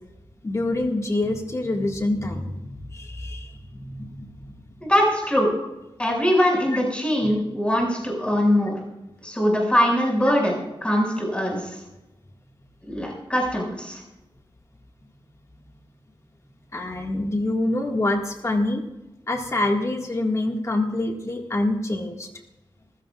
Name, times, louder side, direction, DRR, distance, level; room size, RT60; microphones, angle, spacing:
voice 1, 0.4-4.7 7.2-7.4 16.7-18.8 19.3-22.3, left 2 dB, 35° left, 2 dB, 1.8 m, -26 dB
voice 2, 4.8-5.5 6.0-8.8 9.2-11.6 12.9-14.0, equal, 10° left, -2 dB, 5.8 m, -22 dB
25.5 x 15.5 x 2.4 m, 1.0 s
wide cardioid pair, 135°, 9 cm